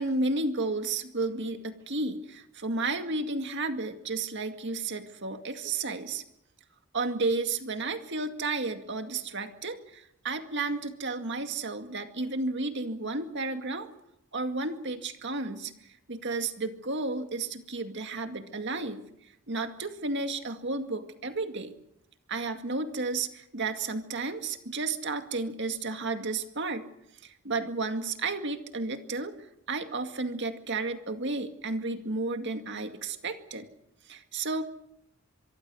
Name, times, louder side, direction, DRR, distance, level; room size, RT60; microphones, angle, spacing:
voice 1, 0.0-6.2 6.9-13.9 14.3-15.7 16.1-19.0 19.5-21.7 22.3-26.9 27.2-29.3 29.7-33.7 34.1-34.6, right 3 dB, 55° right, 7 dB, 2.1 m, -32 dB
25.0 x 23.0 x 6.4 m, 0.78 s
head